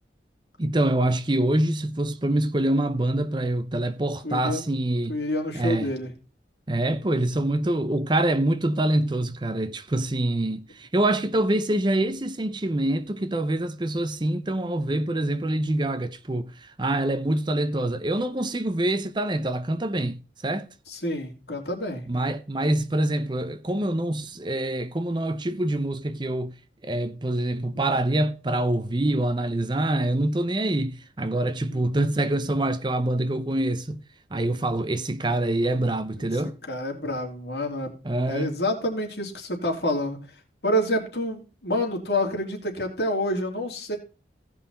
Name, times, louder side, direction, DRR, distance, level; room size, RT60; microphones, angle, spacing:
voice 1, 0.6-5.2 5.5-5.9 6.7-20.7 22.1-26.5 26.8-34.0 34.3-36.5 38.0-38.6, right 1 dB, 25° right, 0.7 m, -25 dB
voice 2, 4.2-4.6 5.1-6.1 20.9-22.0 31.7-32.1 36.2-36.3 36.7-37.9 38.3-40.2 40.6-44.0, left 1 dB, 65° left, 2.9 m, -28 dB
16.5 x 5.6 x 4.2 m
head